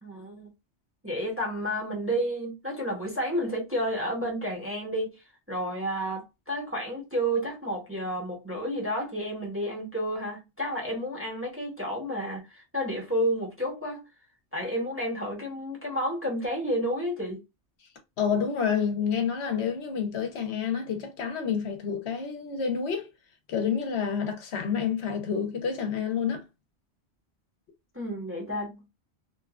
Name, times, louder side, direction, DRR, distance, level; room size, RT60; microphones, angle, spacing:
voice 1, 0.0-0.5 1.0-5.1 5.5-14.0 14.5-17.4 27.9-28.9, equal, 15° right, 0.7 m, -31 dB
voice 2, 18.2-23.1 23.5-26.4, left 7 dB, 70° left, 1.0 m, -28 dB
2.9 x 2.2 x 2.3 m
omnidirectional pair, 1.2 m